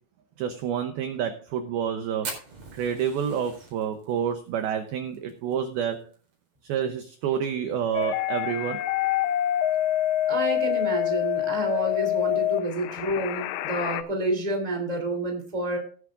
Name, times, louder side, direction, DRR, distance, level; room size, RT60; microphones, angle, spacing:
voice 1, 0.4-2.3 2.7-6.0 6.6-8.8, right 8 dB, 80° right, 8 dB, 2.2 m, -28 dB
Fire, 2.2-6.7 7.0-7.1 7.4-7.5 7.8-8.3 8.8-8.9 9.9-10.1, right 3 dB, 35° right, 5.2 m, -41 dB
sound 1, 8.0-14.0, left 12 dB, 90° left, 3.3 m, -26 dB
voice 2, 10.3-15.8, right 1 dB, 10° right, 3 dB, 2.1 m, -29 dB
17.0 x 11.0 x 2.6 m, 0.42 s
omnidirectional pair, 5.6 m